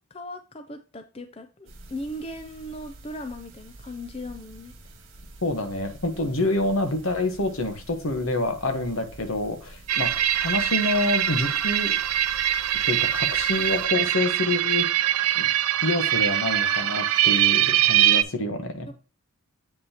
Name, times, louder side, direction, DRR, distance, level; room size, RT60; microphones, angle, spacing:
voice 1, 0.1-4.7 18.8-18.9, left 1 dB, 25° left, 7 dB, 0.5 m, -38 dB
sound 1, 1.7-13.9, right 1 dB, 55° right, 2.0 m, -47 dB
voice 2, 5.4-10.1 10.4-12.0 12.8-14.9 15.3-15.5 15.8-18.9, left 2 dB, 65° left, 7 dB, 1.2 m, -27 dB
sound 2, 9.9-18.2, right 12 dB, 80° right, 0.5 m, -23 dB
7.8 x 5.6 x 2.9 m, 0.35 s
head